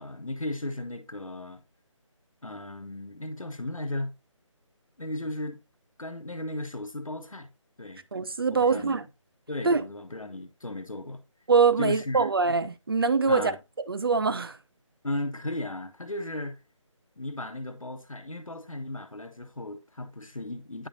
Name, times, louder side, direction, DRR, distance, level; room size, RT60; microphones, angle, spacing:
voice 1, 0.0-1.6 2.4-4.1 5.0-5.6 6.0-7.5 7.8-8.0 8.5-9.0 9.5-11.2 11.8-12.3 13.3-13.6 15.0-16.6 17.2-20.9, left 1 dB, 85° left, 1.0 m, -35 dB
voice 2, 8.1-9.1 9.6-9.8 11.5-13.5 13.9-14.6, right 4 dB, 45° right, 0.5 m, -23 dB
9.8 x 3.9 x 2.6 m
figure-of-eight pair, 160°, 17 cm